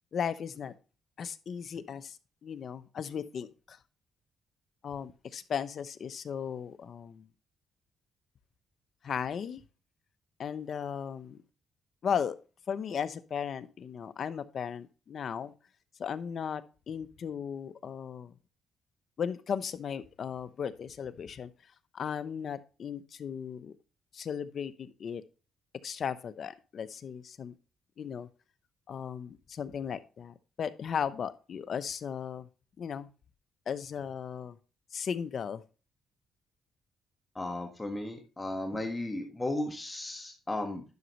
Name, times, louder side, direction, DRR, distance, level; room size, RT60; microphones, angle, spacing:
voice 1, 0.1-0.7 1.2-2.2 2.4-3.8 4.8-7.3 9.0-9.6 10.4-11.4 12.0-12.4 12.7-15.5 16.0-18.3 19.2-21.5 21.9-23.7 24.1-25.2 25.8-27.5 28.0-28.3 28.9-32.5 32.8-33.1 33.7-34.6 34.9-35.6, left 7 dB, 55° left, 0.8 m, -36 dB
voice 2, 37.3-40.8, left 1 dB, 20° left, 1.5 m, -35 dB
10.5 x 6.3 x 3.1 m
cardioid pair, 90°, 0 cm